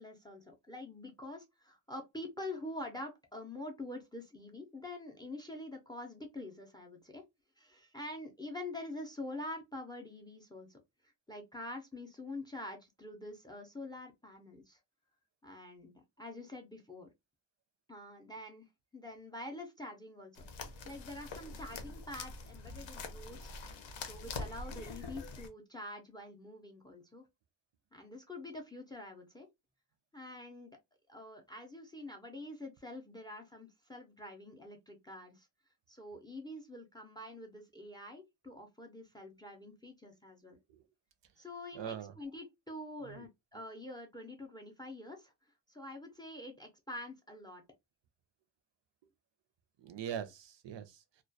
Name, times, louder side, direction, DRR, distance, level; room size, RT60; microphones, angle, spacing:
voice 1, 0.0-7.2 7.6-10.8 11.3-14.8 15.4-17.1 17.9-18.7 18.9-23.5 24.0-27.3 27.9-29.5 30.1-30.8 31.1-35.5 35.9-40.6 41.4-45.3 45.7-47.6, left 1 dB, 10° left, 0.3 m, -46 dB
sound 1, 20.3-25.5, left 3 dB, 85° left, 0.6 m, -44 dB
voice 2, 40.5-40.9 41.7-42.1 43.0-43.3 49.8-51.2, right 9 dB, 75° right, 0.5 m, -43 dB
2.2 x 2.2 x 2.6 m
wide cardioid pair, 160°, 44 cm